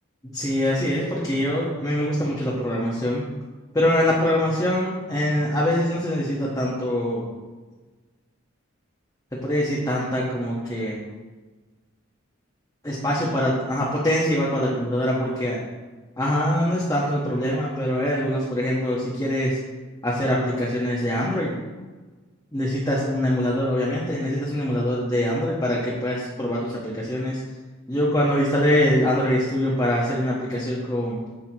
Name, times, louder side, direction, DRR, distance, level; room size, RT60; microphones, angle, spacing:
voice 1, 0.2-3.3 3.7-7.2 9.4-11.0 12.8-15.6 16.2-19.6 20.0-21.5 22.5-27.4 27.9-31.2, left 1 dB, 15° left, -6 dB, 1.3 m, -23 dB
10.5 x 8.1 x 3.0 m, 1.3 s
head